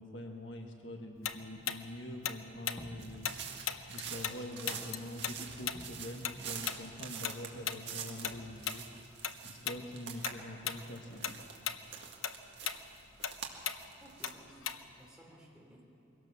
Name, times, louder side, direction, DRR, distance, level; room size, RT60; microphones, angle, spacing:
voice 1, 0.0-3.6 3.9-8.9 9.4-11.4, left 1 dB, 65° left, 3 dB, 1.5 m, -45 dB
Tick-tock, 1.2-4.4 4.7-9.4 9.6-9.9 10.2-10.8 11.1-15.1, left 9 dB, 85° left, 0.8 m, -38 dB
sound 1, 2.6-13.4, equal, 30° left, 1.8 m, -56 dB
sound 2, 3.0-10.3 10.6-14.3, right 7 dB, 60° right, 2.0 m, -46 dB
voice 2, 14.0-15.8, right 1 dB, 5° right, -2 dB, 3.2 m, -57 dB
22.5 x 17.5 x 7.2 m, 2.9 s
head